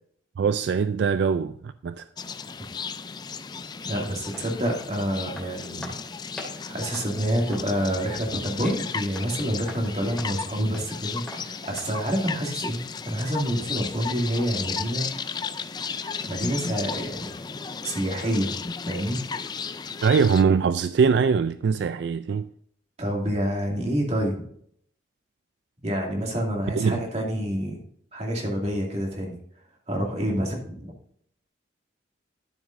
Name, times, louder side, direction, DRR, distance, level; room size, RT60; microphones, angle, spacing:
voice 1, 0.4-2.1 20.0-22.5 26.7-27.0, right 5 dB, 65° right, 0.3 m, -22 dB
sound 1, 2.2-20.4, left 5 dB, 20° left, 0.3 m, -35 dB
voice 2, 3.8-6.0 6.7-12.8 13.0-15.1 16.2-17.3 17.8-19.2 23.0-24.3 25.8-27.8 28.1-29.4 29.9-30.9, equal, 35° right, 2.3 m, -28 dB
sound 2, 3.9-12.0, left 1 dB, 5° left, 2.4 m, -44 dB
12.5 x 7.1 x 2.6 m
head